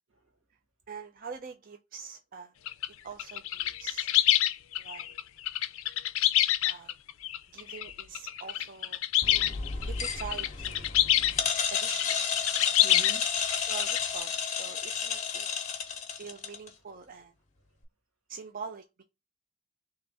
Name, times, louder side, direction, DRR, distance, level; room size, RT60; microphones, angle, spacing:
voice 1, 0.9-2.5 3.0-4.1 4.8-5.1 6.7-6.9 7.5-9.3 9.9-10.9 11.7-12.7 13.5-15.5 16.2-17.3 18.3-19.0, right 6 dB, 40° right, 0.4 m, -44 dB
sound 1, 2.7-2.9 3.2-11.3 11.7-13.1 13.4-14.0, left 14 dB, 65° left, 0.4 m, -27 dB
sound 2, 9.2-16.7, left 6 dB, 35° left, 0.8 m, -32 dB
voice 2, 9.3-9.9 11.1-11.7 12.5-13.6 16.1-16.2, right 4 dB, 75° right, 1.3 m, -50 dB
3.4 x 2.9 x 4.1 m
head